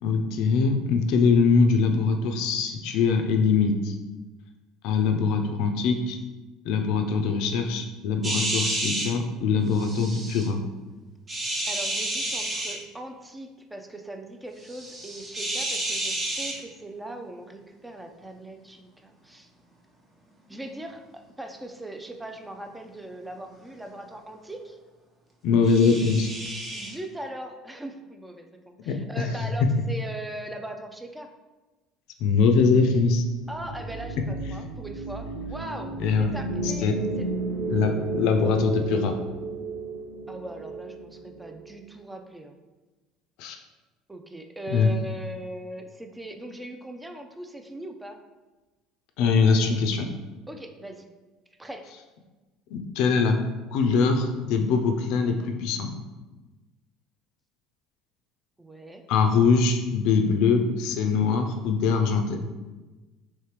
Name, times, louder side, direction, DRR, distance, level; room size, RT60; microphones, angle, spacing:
voice 1, 0.0-4.0 4.8-6.2 6.6-10.6 25.4-26.3 28.8-29.5 32.2-33.2 36.0-36.4 36.6-37.0 37.7-39.1 43.4-43.6 44.7-44.9 49.2-50.1 52.7-53.4 53.7-55.9 59.1-62.4, left 5 dB, 70° left, 5 dB, 0.4 m, -22 dB
sound 1, 8.2-9.1 9.7-10.5 11.3-12.8 14.6-16.6 25.6-26.9, right 1 dB, 30° right, 0.8 m, -30 dB
voice 2, 11.7-19.5 20.5-24.8 26.7-31.3 33.5-36.9 37.2-37.3 40.3-42.6 44.1-48.2 50.5-51.1 51.6-51.9 58.6-59.0, right 1 dB, 10° right, 5 dB, 0.4 m, -40 dB
sound 2, 33.4-41.8, right 3 dB, 70° right, 0.4 m, -33 dB
3.3 x 3.2 x 3.0 m, 1.2 s
hypercardioid pair, 70°, 0 cm